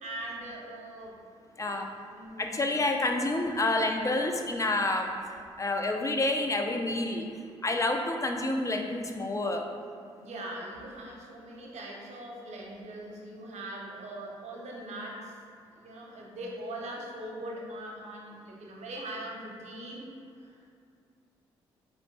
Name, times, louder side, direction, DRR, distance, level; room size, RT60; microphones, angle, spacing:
voice 1, 0.0-1.2 2.1-2.5 10.2-15.4 15.8-20.1 20.4-20.5, right 1 dB, 60° right, -1 dB, 0.8 m, -41 dB
voice 2, 1.6-1.9 2.4-5.1 5.6-7.3 7.6-9.7, left 2 dB, 25° left, 3 dB, 0.5 m, -28 dB
4.2 x 3.1 x 3.1 m, 2.4 s
hypercardioid pair, 45°, 13 cm